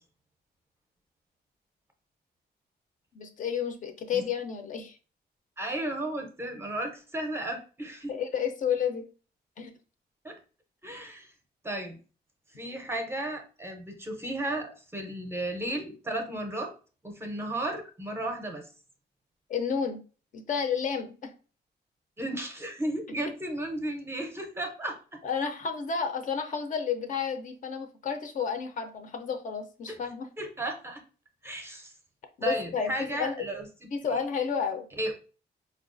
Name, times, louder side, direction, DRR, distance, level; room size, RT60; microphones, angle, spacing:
voice 1, 3.1-5.0 8.1-9.1 9.6-9.7 19.5-20.0 20.3-21.3 25.2-30.3 32.4-33.3 33.9-34.8, left 6 dB, 50° left, 6 dB, 0.4 m, -31 dB
voice 2, 5.6-8.1 10.2-10.4 10.8-11.3 11.6-12.0 12.6-16.7 17.0-18.7 22.2-25.2 30.4-31.0 31.4-31.9 32.4-33.7 34.1-34.2 35.0-35.1, right 1 dB, 15° right, 3 dB, 0.5 m, -34 dB
4.4 x 2.3 x 2.4 m, 0.36 s
wide cardioid pair, 165°, 17 cm